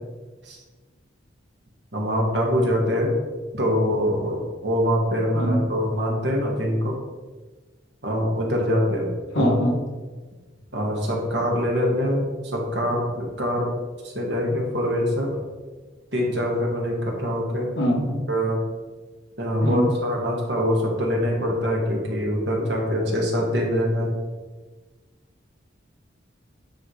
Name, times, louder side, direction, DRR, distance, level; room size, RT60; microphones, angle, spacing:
voice 1, 1.9-3.1 3.5-6.9 8.0-9.1 9.4-9.5 10.7-12.2 12.5-13.7 14.0-15.3 16.1-17.7 18.3-18.6 19.4-24.1, equal, 60° right, -1 dB, 1.8 m, -24 dB
voice 2, 9.3-9.8 17.7-18.2 19.6-19.9, equal, 75° left, 0 dB, 1.5 m, -22 dB
9.3 x 3.8 x 4.8 m, 1.3 s
head